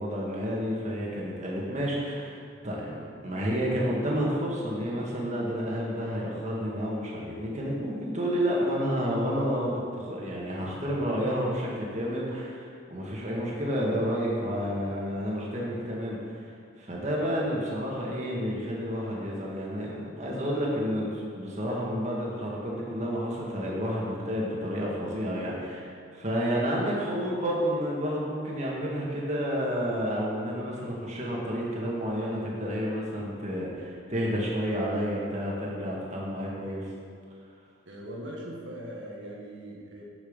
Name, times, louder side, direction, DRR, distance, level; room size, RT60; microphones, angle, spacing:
voice 1, 0.0-16.5 16.8-36.9, equal, 35° right, -4 dB, 1.9 m, -30 dB
voice 2, 37.8-40.0, right 1 dB, 65° right, -2 dB, 1.7 m, -40 dB
8.7 x 7.3 x 5.6 m, 2.2 s
head